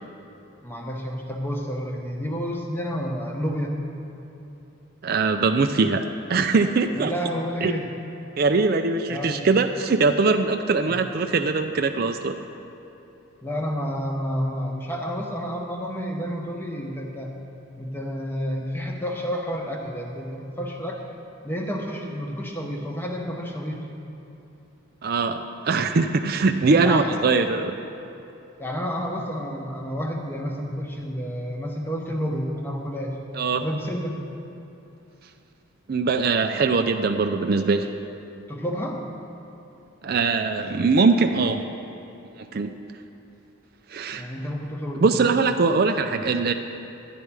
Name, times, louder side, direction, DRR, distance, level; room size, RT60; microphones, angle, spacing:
voice 1, 0.6-3.8 6.9-7.9 9.1-9.4 10.9-11.0 13.4-17.3 17.8-21.0 21.4-23.8 26.8-27.1 28.6-33.2 33.6-34.2 38.5-39.0 44.1-45.3, equal, 10° left, 1 dB, 0.9 m, -30 dB
voice 2, 5.0-7.1 7.6-7.7 8.4-12.4 25.0-27.8 33.3-33.6 35.9-37.9 40.0-41.7 42.5-42.7 43.9-44.2 45.0-46.5, right 4 dB, 45° right, 7 dB, 0.4 m, -22 dB
12.0 x 10.0 x 4.7 m, 2.8 s
head